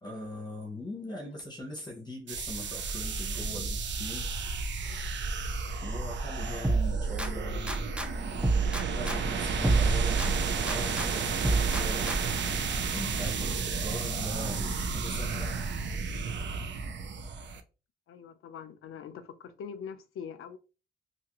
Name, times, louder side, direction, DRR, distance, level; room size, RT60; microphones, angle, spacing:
voice 1, 0.0-4.3 5.8-7.9 9.0-12.2 12.9-15.6, left 2 dB, 20° left, 0.8 m, -41 dB
sound 1, 2.3-17.6, right 4 dB, 60° right, 0.5 m, -32 dB
sound 2, 6.6-8.1 8.4-11.1 11.4-12.5, right 3 dB, 5° right, 0.4 m, -29 dB
voice 2, 18.1-20.6, left 7 dB, 80° left, 0.5 m, -43 dB
2.8 x 2.4 x 2.9 m
wide cardioid pair, 130°, 21 cm